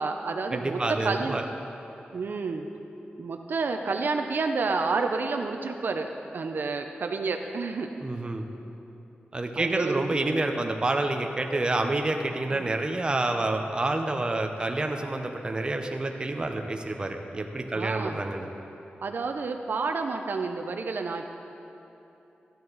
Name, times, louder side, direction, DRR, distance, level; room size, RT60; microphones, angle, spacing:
voice 1, 0.0-1.4 2.1-2.7 3.2-7.9 9.6-10.1 12.5-12.7 17.7-18.2 19.0-21.3, right 4 dB, 65° right, 5 dB, 0.6 m, -30 dB
voice 2, 0.5-1.4 8.0-8.5 9.3-18.5, right 2 dB, 25° right, 4 dB, 0.7 m, -28 dB
14.0 x 10.5 x 4.0 m, 2.9 s
wide cardioid pair, 135°, 4 cm